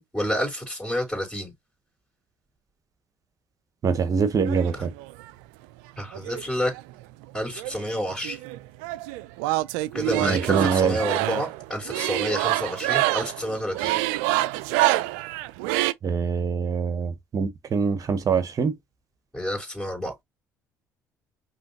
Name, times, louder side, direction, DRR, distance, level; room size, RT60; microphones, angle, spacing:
voice 1, 0.0-1.5 6.0-6.7 7.3-8.4 9.9-14.0 19.3-20.1, equal, ahead, 3.3 m, -29 dB
voice 2, 3.8-4.9 10.2-11.0 16.0-18.7, right 6 dB, 45° right, 1.0 m, -24 dB
sound 1, 4.4-5.3 6.1-7.3 7.6-15.9, right 17 dB, 75° right, 0.4 m, -26 dB
5.5 x 3.1 x 2.8 m
hypercardioid pair, 60°, 8 cm